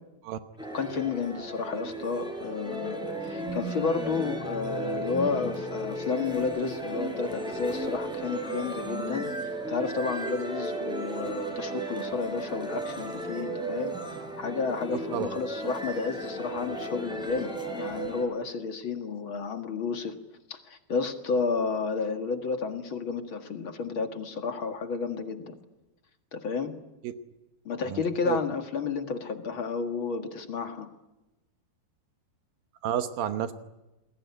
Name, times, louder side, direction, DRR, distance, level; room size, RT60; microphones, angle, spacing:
sound 1, 0.6-18.2, right 2 dB, ahead, 5.2 m, -35 dB
voice 1, 0.7-9.3 9.7-13.9 14.4-20.1 20.5-25.6 26.3-26.7 27.7-30.9, left 5 dB, 45° left, 6 dB, 1.9 m, -31 dB
voice 2, 27.9-28.4 32.8-33.5, right 10 dB, 75° right, 9 dB, 2.7 m, -30 dB
28.5 x 20.5 x 9.6 m, 1.0 s
omnidirectional pair, 4.3 m